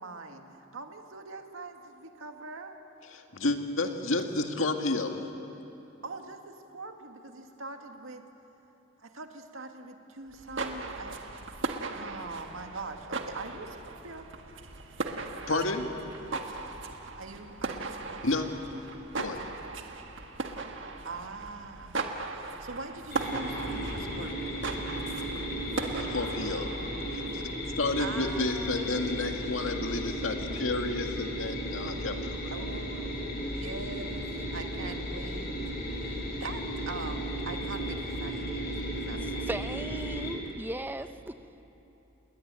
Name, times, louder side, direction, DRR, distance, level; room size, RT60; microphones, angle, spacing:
voice 1, 0.0-2.8 6.0-8.2 9.0-11.2 11.9-14.3 16.2-16.4 17.1-18.4 21.0-24.7 28.0-29.4 32.5-34.3 34.5-35.5 35.9-39.5, right 3 dB, 90° right, 4 dB, 2.1 m, -43 dB
voice 2, 3.1-5.2 15.5-15.9 18.2-18.5 19.2-19.4 26.1-26.7 27.1-27.4 27.8-32.5, left 2 dB, 80° left, 4 dB, 2.1 m, -31 dB
sound 1, 10.3-27.6, right 3 dB, 65° right, 1.7 m, -38 dB
sound 2, 23.1-40.3, equal, 50° left, 5.2 m, -35 dB
voice 3, 39.5-41.4, right 1 dB, 10° right, 10 dB, 0.8 m, -37 dB
29.0 x 21.5 x 9.1 m, 3.0 s
head